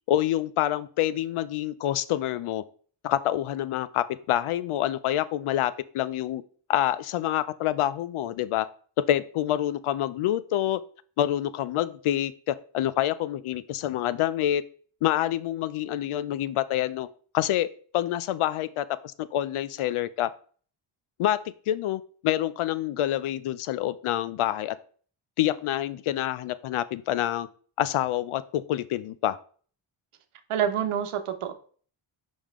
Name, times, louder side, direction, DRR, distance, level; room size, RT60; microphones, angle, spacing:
voice 1, 0.1-2.6 3.0-6.4 6.7-8.7 9.1-10.8 11.2-14.6 15.0-17.1 17.3-17.7 17.9-20.3 21.2-21.4 21.7-24.8 25.4-27.5 27.8-29.4, left 12 dB, 80° left, 16 dB, 0.6 m, -27 dB
voice 2, 30.5-31.5, right 9 dB, 80° right, 8 dB, 1.0 m, -27 dB
5.5 x 5.2 x 3.6 m, 0.44 s
cardioid pair, 100°, 49 cm